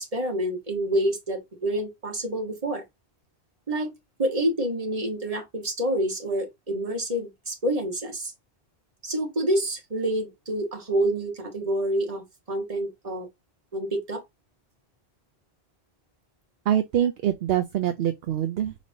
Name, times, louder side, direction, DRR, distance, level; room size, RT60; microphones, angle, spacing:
voice 1, 0.0-2.8 3.7-3.9 4.2-8.3 9.0-13.3 13.7-14.2, right 1 dB, 35° right, 1.5 m, -27 dB
voice 2, 16.7-18.8, right 11 dB, 70° right, 0.8 m, -24 dB
5.1 x 3.2 x 2.7 m
omnidirectional pair, 1.1 m